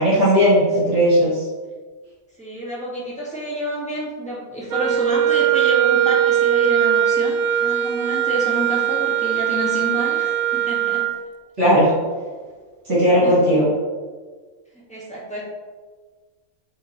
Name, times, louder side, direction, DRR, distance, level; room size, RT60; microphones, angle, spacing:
voice 1, 0.0-1.4 11.6-11.9 12.9-13.7, equal, 55° right, -8 dB, 2.3 m, -16 dB
voice 2, 2.4-11.0 13.2-13.3 14.9-15.4, right 1 dB, 5° left, -8 dB, 1.7 m, -29 dB
Wind instrument woodwind instrument, 4.7-11.2, right 10 dB, 70° right, 0.9 m, -20 dB
8.9 x 3.7 x 3.1 m, 1.4 s
omnidirectional pair, 1.5 m